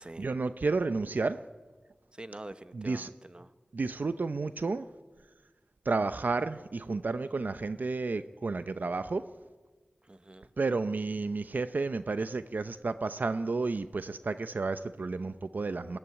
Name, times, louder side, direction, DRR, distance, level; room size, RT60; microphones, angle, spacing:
voice 1, 0.0-1.4 2.7-3.1 3.7-4.8 5.9-9.3 10.6-16.0, right 3 dB, 75° right, 12 dB, 0.7 m, -31 dB
voice 2, 2.1-3.5 10.0-10.5, right 1 dB, 35° right, 12 dB, 1.1 m, -46 dB
21.0 x 16.5 x 9.8 m, 1.3 s
wide cardioid pair, 55°, 3 cm